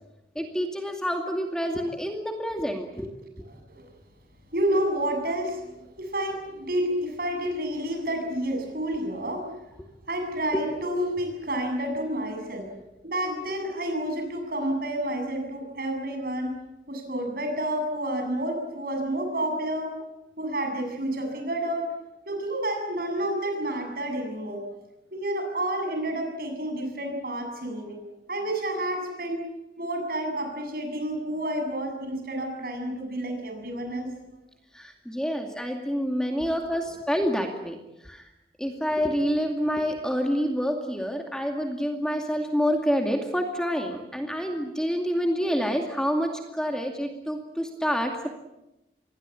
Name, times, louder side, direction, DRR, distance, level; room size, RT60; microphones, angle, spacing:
voice 1, 0.4-3.1 3.4-3.5 10.5-10.6 34.7-37.8 38.0-38.2 38.6-48.3, equal, 5° left, 3 dB, 2.3 m, -27 dB
voice 2, 4.5-9.5 10.1-12.7 13.0-16.6 16.9-19.9 20.4-21.9 22.3-24.7 25.1-28.0 28.3-29.4 29.8-34.1, right 1 dB, 55° right, 5 dB, 7.6 m, -29 dB
26.5 x 22.0 x 8.6 m, 0.93 s
head